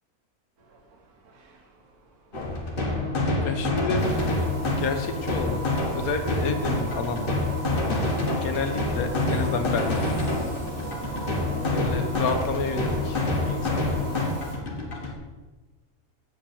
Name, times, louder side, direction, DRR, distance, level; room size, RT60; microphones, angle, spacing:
sound 1, 0.6-15.1, right 3 dB, 75° right, 1.6 m, -45 dB
sound 2, 2.3-15.1, left 2 dB, 40° left, 1.5 m, -27 dB
voice 1, 3.4-4.4 4.8-5.6 5.9-7.4 8.4-9.9 11.6-13.2 13.5-13.9 15.1-15.2, left 4 dB, 70° left, 7 dB, 1.3 m, -30 dB
sound 3, 4.0-14.6, right 2 dB, 10° right, 2.6 m, -39 dB
7.9 x 5.0 x 7.0 m, 1.2 s
omnidirectional pair, 1.6 m